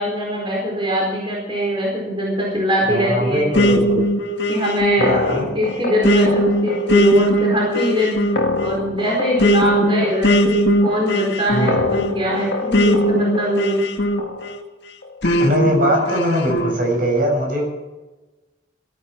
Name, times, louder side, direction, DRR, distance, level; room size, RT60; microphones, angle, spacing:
voice 1, 0.0-3.5 4.5-8.2 8.6-13.9, equal, 30° right, -2 dB, 4.5 m, -21 dB
voice 2, 2.9-4.0 5.0-5.5 11.5-11.7 15.4-17.6, equal, 50° right, 2 dB, 6.6 m, -20 dB
sound 1, 3.5-14.6 15.2-16.8, left 1 dB, 75° left, 1.8 m, -19 dB
18.0 x 14.5 x 4.6 m, 1.1 s
head